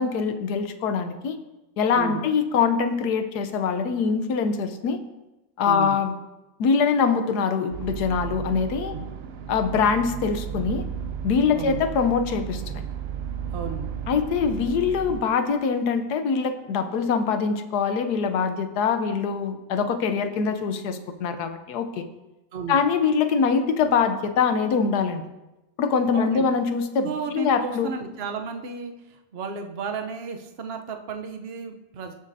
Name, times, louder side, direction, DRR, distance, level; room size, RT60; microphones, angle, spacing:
voice 1, 0.0-1.4 1.8-5.0 5.6-6.1 6.6-9.0 9.5-10.8 11.2-12.8 14.1-22.1 22.7-25.2 25.8-27.9, left 5 dB, 75° left, 9 dB, 1.3 m, -23 dB
voice 2, 1.9-2.2 5.6-6.0 8.8-9.0 11.5-11.8 13.5-13.9 22.5-22.8 26.1-26.5 27.0-28.9 29.3-32.2, right 5 dB, 45° right, 4 dB, 0.9 m, -33 dB
sound 1, 7.7-15.2, right 8 dB, 80° right, 0.5 m, -34 dB
18.0 x 6.5 x 2.7 m, 1.0 s
omnidirectional pair, 1.7 m